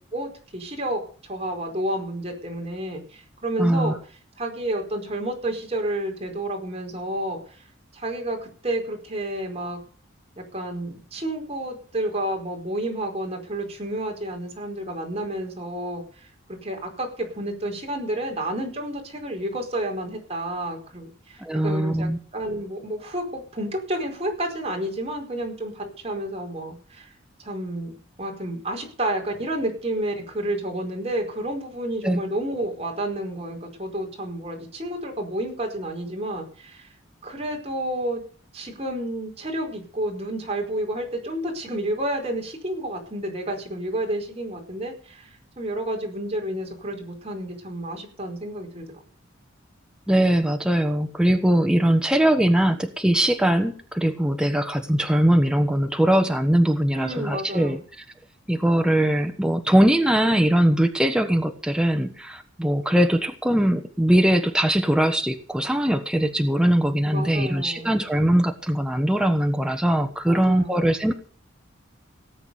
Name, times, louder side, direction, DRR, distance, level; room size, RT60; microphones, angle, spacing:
voice 1, 0.1-4.0 4.4-7.6 7.9-9.8 10.5-16.3 16.6-27.1 27.4-27.9 28.2-36.9 37.2-38.2 38.5-45.3 45.6-48.9 56.9-57.8 67.0-67.9 70.3-70.8, right 1 dB, 30° right, 2 dB, 4.8 m, -30 dB
voice 2, 3.6-3.9 21.4-22.2 32.0-32.2 50.1-57.8 58.5-71.1, right 1 dB, 5° right, 5 dB, 1.2 m, -21 dB
18.0 x 8.3 x 7.0 m, 0.43 s
head